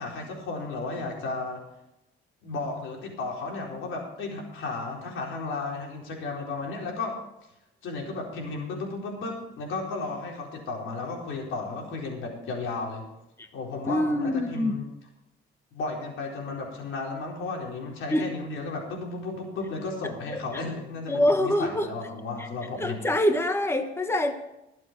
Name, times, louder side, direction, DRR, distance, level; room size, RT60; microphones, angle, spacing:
voice 1, 0.0-1.6 2.4-7.2 7.8-13.1 13.5-14.8 15.7-23.0, left 3 dB, 80° left, 0 dB, 4.2 m, -34 dB
voice 2, 13.9-14.8 18.1-18.3 21.1-21.9 22.4-22.5 22.8-24.3, left 1 dB, 10° left, 7 dB, 1.3 m, -24 dB
22.0 x 7.6 x 4.6 m, 0.89 s
cardioid pair, 90°, 20 cm